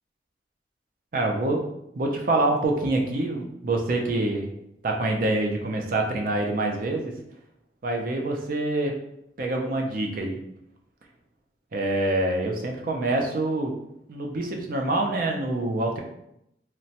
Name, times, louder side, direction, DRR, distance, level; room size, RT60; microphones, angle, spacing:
voice 1, 1.1-1.6 2.0-4.5 4.8-7.1 7.8-8.9 9.4-10.4 11.7-13.7 14.1-16.0, right 2 dB, 50° right, 2 dB, 0.4 m, -26 dB
3.0 x 2.1 x 2.8 m, 0.80 s
head